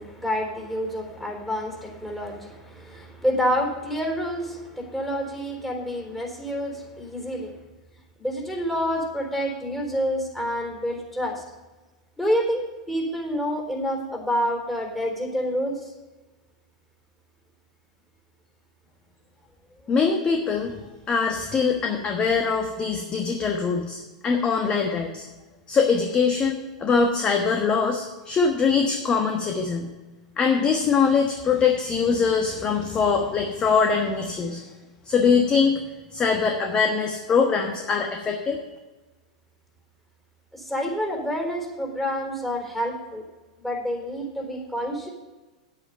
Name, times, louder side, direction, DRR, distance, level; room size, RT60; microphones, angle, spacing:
voice 1, 0.0-7.6 8.2-11.4 12.2-15.9 40.5-43.3 43.6-45.1, equal, 5° left, 0 dB, 3.8 m, -28 dB
voice 2, 19.9-20.8 21.1-25.2 25.7-29.9 30.4-34.6 35.1-35.7 36.1-38.6, left 5 dB, 25° left, 3 dB, 1.3 m, -22 dB
9.8 x 8.8 x 5.3 m, 1.2 s
hypercardioid pair, 95°, 4 cm